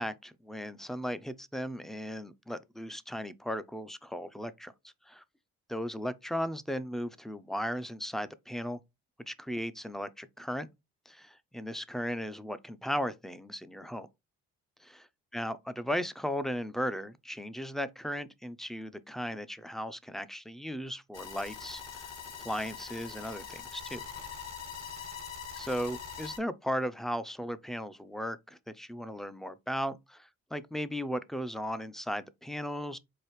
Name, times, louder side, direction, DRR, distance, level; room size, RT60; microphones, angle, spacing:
voice 1, 0.0-4.7 5.1-5.2 5.7-8.8 9.3-10.7 11.1-14.1 14.8-15.0 15.3-22.1 22.4-24.1 25.5-33.0, equal, ahead, 0.3 m, -36 dB
sound 1, 21.1-26.4, left 6 dB, 55° left, 1.3 m, -43 dB
4.8 x 2.4 x 3.0 m
cardioid pair, 90°, 30 cm